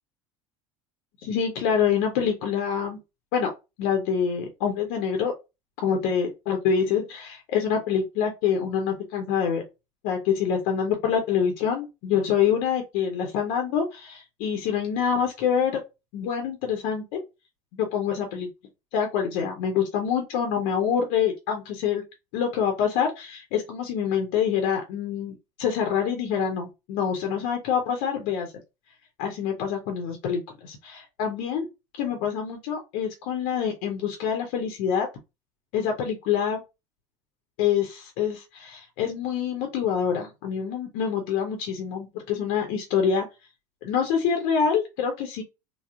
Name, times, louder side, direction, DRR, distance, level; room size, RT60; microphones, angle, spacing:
voice 1, 1.2-3.0 3.3-3.5 3.8-5.3 5.8-9.6 10.0-15.8 16.1-17.2 17.7-18.5 18.9-22.0 22.3-28.5 29.2-31.7 32.0-35.1 35.7-36.6 37.6-43.3 43.8-45.4, left 7 dB, 55° left, 4 dB, 0.6 m, -26 dB
3.5 x 2.0 x 2.3 m, 0.25 s
figure-of-eight pair, 70°, 19 cm